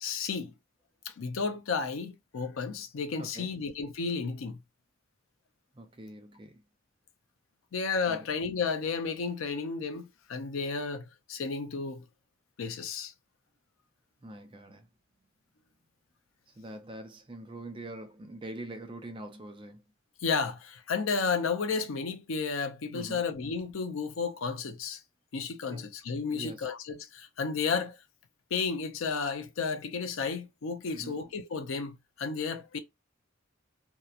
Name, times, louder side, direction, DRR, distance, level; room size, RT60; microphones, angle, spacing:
voice 1, 0.0-0.5 1.1-4.6 7.7-12.0 12.6-13.1 20.2-25.0 25.3-28.0 28.5-32.8, left 5 dB, 90° left, 0.5 m, -32 dB
voice 2, 3.2-3.5 5.7-6.6 8.1-8.3 14.2-14.9 16.6-19.8 22.9-23.2 25.7-25.9 26.3-26.6 30.9-31.3, right 1 dB, 25° right, 0.5 m, -44 dB
2.8 x 2.1 x 2.4 m
head